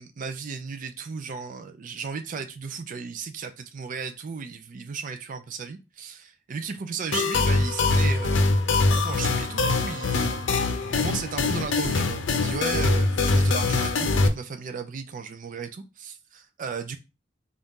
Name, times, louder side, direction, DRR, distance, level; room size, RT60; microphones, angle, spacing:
voice 1, 0.0-10.4 11.0-16.2 16.6-17.0, right 5 dB, 45° right, 0.4 m, -35 dB
sound 1, 7.1-14.3, left 3 dB, 70° left, 0.6 m, -23 dB
4.0 x 2.4 x 3.6 m
head